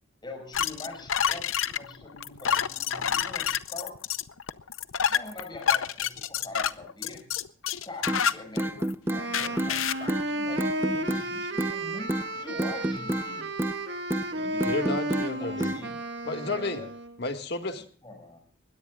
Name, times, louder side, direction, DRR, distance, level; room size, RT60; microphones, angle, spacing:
voice 1, 0.2-4.0 5.1-7.3 7.9-13.6 14.3-14.7 15.4-16.0 16.4-16.9 18.0-18.4, left 2 dB, 20° left, 3 dB, 5.4 m, -43 dB
sound 1, 0.5-8.9 9.3-10.1, left 8 dB, 85° left, 0.7 m, -28 dB
sound 2, 8.1-8.2 8.6-9.2 9.6-9.7 10.1-10.2 10.6-11.2 11.6-11.8 12.1-12.2 12.6-13.3 13.6-13.8 14.1-14.3 14.6-15.3 15.6-15.8, right 1 dB, 10° right, 0.7 m, -28 dB
Wind instrument woodwind instrument, 9.1-17.2, right 1 dB, 55° right, 1.8 m, -33 dB
voice 2, 14.6-15.7 16.3-16.8 17.2-17.9, left 2 dB, 55° left, 6 dB, 1.9 m, -32 dB
21.5 x 20.0 x 2.4 m, 0.43 s
head